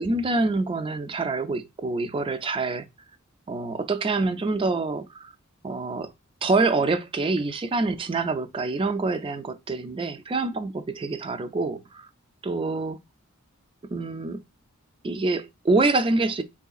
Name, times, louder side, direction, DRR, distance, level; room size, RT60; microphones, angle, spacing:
voice 1, 0.0-2.9 3.5-5.3 5.6-6.1 6.4-12.1 12.4-13.0 13.9-14.4 15.0-16.4, right 3 dB, 25° right, 0.3 m, -26 dB
3.7 x 3.2 x 2.3 m
head